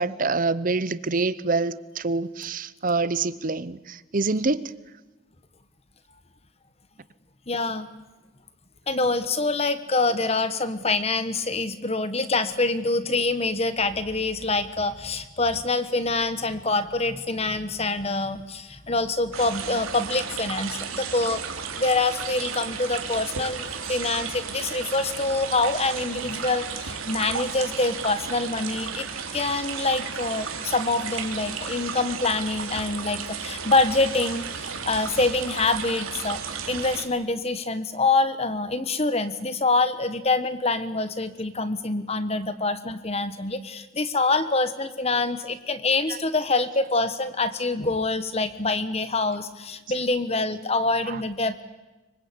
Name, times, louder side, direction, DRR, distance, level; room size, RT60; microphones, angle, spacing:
voice 1, 0.0-4.7 46.1-46.2 51.1-51.2, right 3 dB, 40° right, 16 dB, 0.8 m, -26 dB
voice 2, 7.5-7.9 8.9-21.4 21.7-29.1 29.3-36.4 36.7-51.6, left 3 dB, 30° left, 12 dB, 1.3 m, -25 dB
sound 1, 19.3-37.0, right 6 dB, 90° right, 3.0 m, -34 dB
24.5 x 24.0 x 8.6 m, 1.1 s
head